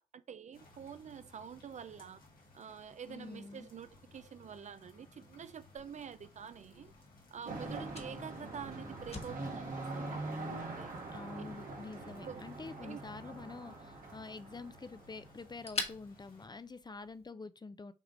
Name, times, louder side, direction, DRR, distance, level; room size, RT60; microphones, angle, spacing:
voice 1, 0.0-2.2 2.5-6.9 7.3-11.0 12.2-12.4 12.8-13.0, right 7 dB, 55° right, 0.4 m, -47 dB
sound 1, 0.5-16.5, left 2 dB, 80° left, 1.7 m, -61 dB
voice 2, 3.1-3.7 11.1-17.9, left 4 dB, 30° left, 0.5 m, -47 dB
Fire, 5.7-17.3, left 3 dB, 45° left, 1.3 m, -49 dB
sound 2, 7.5-15.5, right 2 dB, 75° right, 1.5 m, -43 dB
6.5 x 2.4 x 3.0 m
supercardioid pair, 40°, 15 cm